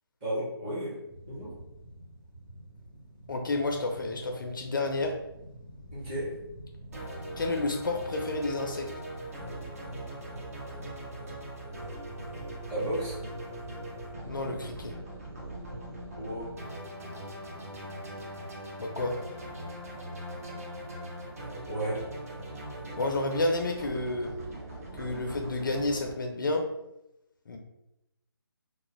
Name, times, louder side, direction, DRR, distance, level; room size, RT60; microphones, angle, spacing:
voice 1, 0.2-1.0 1.3-1.6 5.9-6.4 12.7-13.2 16.2-16.6 21.7-22.1, right 1 dB, 15° right, -10 dB, 1.0 m, -33 dB
sound 1, 1.0-16.0, equal, 55° right, 1.1 m, -49 dB
voice 2, 3.3-5.1 7.4-8.9 14.3-14.9 18.8-19.2 23.0-24.3 24.9-26.7 27.5-27.6, left 2 dB, 55° left, 3 dB, 0.4 m, -30 dB
sound 2, 6.9-26.1, right 1 dB, 35° right, 0.5 m, -41 dB
2.3 x 2.0 x 3.1 m, 0.89 s
figure-of-eight pair, 155°, 13 cm